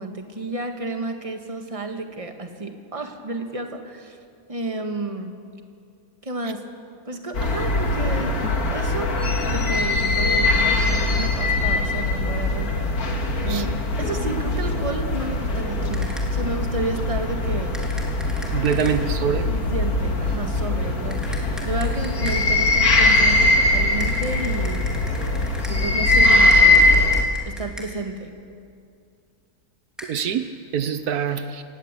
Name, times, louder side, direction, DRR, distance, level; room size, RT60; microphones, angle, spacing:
voice 1, 0.0-4.2 4.5-5.3 6.2-6.6 7.0-8.4 8.7-9.1 9.5-13.1 13.4-17.7 18.7-18.8 19.4-24.9 25.7-26.8 27.5-28.3, right 2 dB, 20° right, 5 dB, 1.8 m, -31 dB
sound 1, 7.3-27.2, left 2 dB, 70° left, 2.4 m, -21 dB
sound 2, 15.9-16.5 17.7-19.2 21.1-22.6 24.0-28.1 30.0-30.1, equal, ahead, 3.3 m, -40 dB
voice 2, 18.5-19.5 30.1-30.5 30.7-31.6, right 8 dB, 75° right, 10 dB, 1.4 m, -24 dB
27.0 x 18.5 x 8.3 m, 2.4 s
omnidirectional pair, 1.7 m